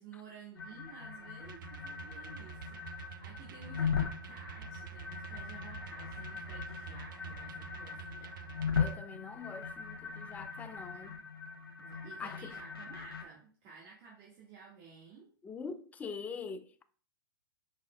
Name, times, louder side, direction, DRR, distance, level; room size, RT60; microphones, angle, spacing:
voice 1, 0.0-8.3 11.8-15.3, right 5 dB, 45° right, 1.8 m, -53 dB
sound 1, 0.5-13.2, left 6 dB, 90° left, 0.9 m, -39 dB
sound 2, 1.4-9.0, right 9 dB, 65° right, 0.4 m, -48 dB
voice 2, 8.8-11.2 12.2-12.6 15.4-16.8, left 5 dB, 15° left, 0.4 m, -44 dB
5.4 x 4.3 x 2.3 m
hypercardioid pair, 115°, 12 cm